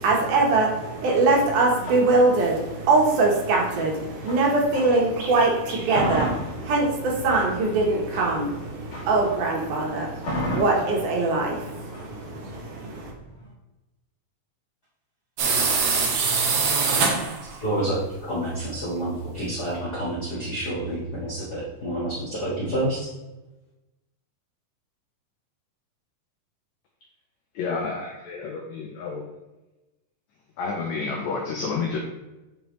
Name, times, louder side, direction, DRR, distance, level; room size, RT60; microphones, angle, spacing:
voice 1, 0.0-13.1, right 3 dB, 70° right, -1 dB, 2.5 m, -22 dB
sound 1, 1.0-5.2 5.6-13.5, equal, 40° left, 2.9 m, -34 dB
sound 2, 15.4-17.6, right 4 dB, 90° right, 1.2 m, -22 dB
voice 2, 17.6-23.1, right 1 dB, 55° left, -8 dB, 1.1 m, -28 dB
voice 3, 27.6-29.3 30.6-32.0, left 4 dB, 80° left, 0 dB, 1.6 m, -30 dB
8.2 x 4.7 x 3.0 m, 1.0 s
omnidirectional pair, 4.1 m